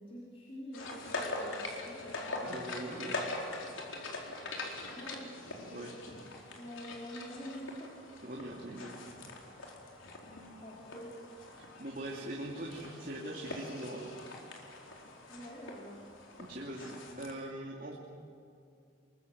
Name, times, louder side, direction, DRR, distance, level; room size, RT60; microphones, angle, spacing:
voice 1, 0.0-2.4 4.9-5.3 6.6-8.2 10.2-11.2 15.3-16.0, equal, 30° left, -5 dB, 3.9 m, -47 dB
sound 1, 0.7-17.3, left 2 dB, 75° left, 4.3 m, -43 dB
voice 2, 2.4-3.1 5.7-5.9 8.2-9.0 11.6-14.2 16.5-17.9, right 1 dB, 45° right, -2 dB, 2.8 m, -42 dB
27.5 x 23.0 x 8.0 m, 2.5 s
head